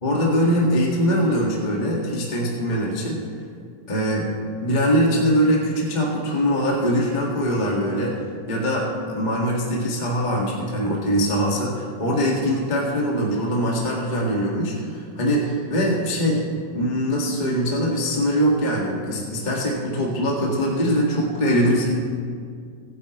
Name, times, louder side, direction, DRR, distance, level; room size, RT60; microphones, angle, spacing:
voice 1, 0.0-3.2 3.9-4.2 4.6-8.1 8.5-16.4 16.7-21.9, equal, 20° left, -3 dB, 1.6 m, -22 dB
23.5 x 10.0 x 3.2 m, 2.1 s
omnidirectional pair, 3.3 m